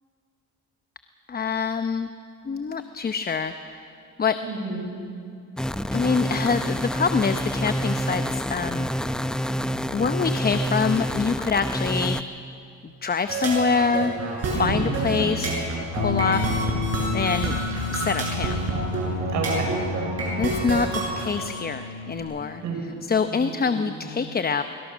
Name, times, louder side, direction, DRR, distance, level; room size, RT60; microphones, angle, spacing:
voice 1, 1.3-2.1 2.4-3.9 4.2-4.3 5.9-8.9 9.9-12.2 12.8-14.1 14.4-15.5 16.0-16.6 17.1-17.5 17.9-18.5 20.4-22.6 23.1-24.6, left 5 dB, 30° left, 9 dB, 0.9 m, -25 dB
voice 2, 4.4-5.0 14.4-15.2 19.3-19.8 22.6-22.8 23.4-24.1, right 4 dB, 80° right, 1 dB, 5.8 m, -30 dB
sound 1, 5.6-12.2, equal, ahead, 0.7 m, -27 dB
sound 2, 13.3-21.3, right 2 dB, 55° right, 7.7 m, -28 dB
Bass guitar, 16.0-22.2, left 4 dB, 45° left, 8.0 m, -32 dB
24.5 x 23.0 x 6.3 m, 2.5 s
cardioid pair, 90°, 30 cm